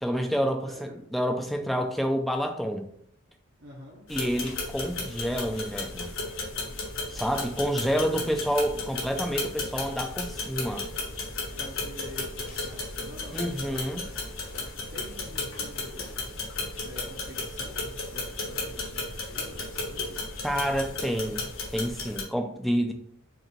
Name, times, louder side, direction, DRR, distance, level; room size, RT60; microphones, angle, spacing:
voice 1, 0.0-2.9 4.1-6.1 7.1-10.9 13.3-14.0 20.4-21.4 21.7-22.9, equal, ahead, 4 dB, 0.3 m, -28 dB
voice 2, 0.6-1.0 3.6-4.1 7.6-8.4 11.5-13.9 14.9-16.4 16.8-20.3, equal, 55° right, -2 dB, 0.8 m, -47 dB
sound 1, 4.1-22.2, left 3 dB, 70° left, 1.1 m, -35 dB
sound 2, 12.1-12.8 13.4-15.2 15.8-16.4 16.6-17.2, left 2 dB, 45° left, 0.9 m, -50 dB
4.9 x 2.5 x 3.1 m, 0.68 s
head